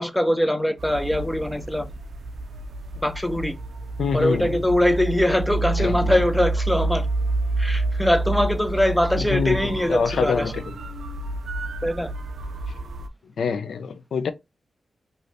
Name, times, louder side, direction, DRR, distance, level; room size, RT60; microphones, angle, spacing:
voice 1, 0.0-1.9 3.0-3.5 4.1-7.1 7.6-10.5 11.8-12.1, left 1 dB, 5° left, 0.4 m, -22 dB
sound 1, 0.8-13.1, right 2 dB, 75° right, 0.4 m, -29 dB
voice 2, 4.0-4.6 5.8-6.1 9.2-10.6 13.4-14.3, left 5 dB, 85° left, 0.3 m, -25 dB
3.1 x 2.6 x 2.6 m
wide cardioid pair, 105°, 0 cm